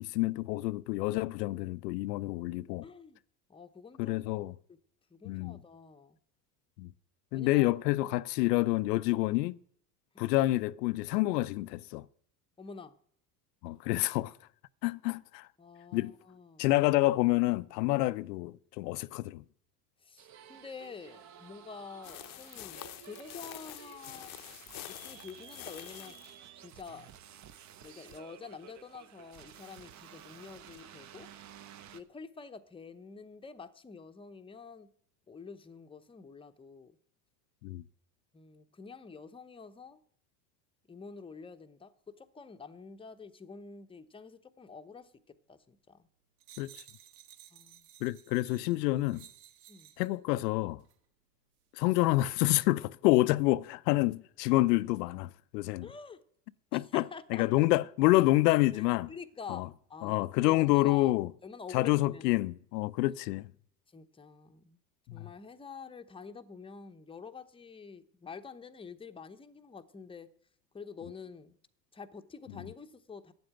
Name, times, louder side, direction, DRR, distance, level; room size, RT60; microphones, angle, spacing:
voice 1, 0.0-2.9 4.0-4.5 5.2-5.6 6.8-6.9 7.3-9.6 10.2-12.1 13.6-14.3 14.8-15.5 15.9-16.1 16.6-19.4 37.6-37.8 46.6-46.7 48.0-49.3 50.0-50.8 51.8-55.9 56.7-57.0 57.3-59.1 59.5-59.7 60.0-61.3 61.7-63.5 65.1-65.3, left 18 dB, 80° left, 0.6 m, -28 dB
voice 2, 2.8-3.2 3.5-4.2 4.7-4.8 5.1-6.2 7.3-7.7 10.1-10.2 12.6-13.0 15.6-16.7 20.0-24.3 24.9-26.1 26.6-27.1 27.8-31.3 31.9-34.9 35.3-36.9 38.3-40.0 40.9-46.1 47.5-47.9 49.7-49.9 55.8-56.2 56.7-57.4 58.7-61.2 61.4-62.3 63.9-64.8 65.1-70.3 70.7-71.6 71.9-73.3, left 5 dB, 10° left, 0.8 m, -48 dB
sound 1, 20.2-32.0, right 9 dB, 35° right, 0.9 m, -53 dB
sound 2, 22.0-26.4, left 16 dB, 45° left, 0.7 m, -47 dB
sound 3, 46.4-50.2 50.8-51.0, right 11 dB, 70° right, 1.5 m, -56 dB
9.5 x 7.9 x 8.9 m
supercardioid pair, 95°, 48 cm